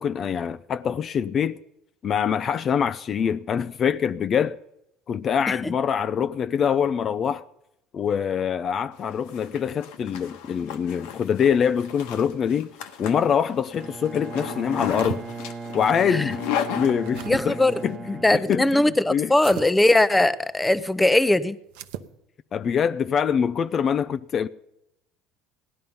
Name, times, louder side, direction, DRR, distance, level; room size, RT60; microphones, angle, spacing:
voice 1, 0.0-1.6 2.0-4.6 5.1-7.4 7.9-12.7 13.0-15.3 15.7-16.4 16.8-17.6 17.8-19.3 22.5-24.5, left 7 dB, 45° left, 0.5 m, -24 dB
Zipper (clothing), 9.0-17.7, left 9 dB, 80° left, 1.4 m, -35 dB
Bowed string instrument, 13.7-19.2, right 4 dB, 30° right, 1.1 m, -38 dB
sound 1, 14.6-15.2 16.6-17.4 19.3-19.7 21.7-22.1, right 11 dB, 80° right, 0.8 m, -36 dB
voice 2, 17.3-17.7 18.2-21.6, left 1 dB, 10° left, 0.7 m, -20 dB
17.0 x 11.0 x 5.5 m
supercardioid pair, 95°, 0 cm